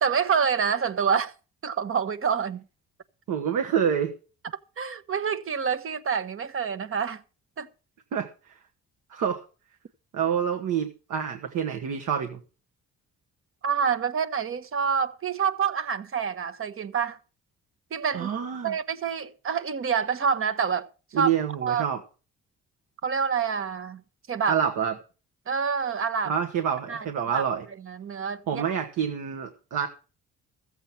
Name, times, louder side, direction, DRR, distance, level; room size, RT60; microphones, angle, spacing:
voice 1, 0.0-1.3 1.6-2.6 4.8-7.2 7.6-7.7 13.6-17.2 17.9-18.3 18.6-20.9 21.1-21.3 21.6-21.9 23.0-24.0 24.3-24.6 25.5-26.3 26.9-27.4 27.8-28.6, right 6 dB, 45° right, 1.1 m, -27 dB
voice 2, 3.3-4.1 8.1-8.3 9.1-9.4 10.1-12.4 18.1-18.7 21.1-22.0 24.5-24.9 26.3-27.6 28.5-29.9, right 8 dB, 80° right, 1.5 m, -27 dB
14.5 x 7.9 x 5.8 m
cardioid pair, 90°, 30 cm